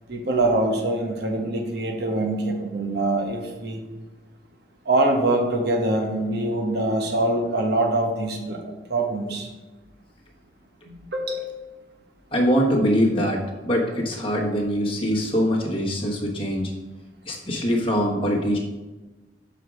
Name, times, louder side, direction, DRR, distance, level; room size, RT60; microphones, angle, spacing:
voice 1, 0.1-3.8 4.8-8.6 8.9-9.5 10.9-11.5, right 2 dB, 60° right, 2 dB, 1.1 m, -24 dB
voice 2, 12.3-16.7 17.2-18.6, equal, 30° left, -1 dB, 1.3 m, -23 dB
5.0 x 4.8 x 6.2 m, 1.2 s
head